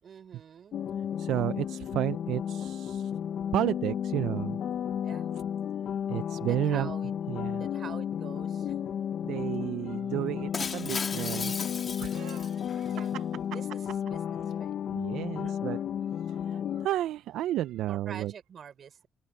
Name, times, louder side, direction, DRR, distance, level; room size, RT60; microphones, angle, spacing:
voice 1, 0.0-0.8 5.0-5.3 6.5-7.1 7.6-8.9 12.5-13.2 13.5-14.7 15.4-15.5 17.9-19.1, right 7 dB, 55° right, 5.1 m, -46 dB
sound 1, 0.7-16.9, left 9 dB, 65° left, 0.7 m, -33 dB
voice 2, 1.2-3.1 3.5-4.6 6.1-6.9 7.3-7.7 9.2-13.2 14.9-15.8 16.3-18.3, right 13 dB, 85° right, 0.4 m, -32 dB
Shatter, 10.5-12.9, left 5 dB, 40° left, 1.4 m, -36 dB
open air
cardioid pair, 90°, 0 cm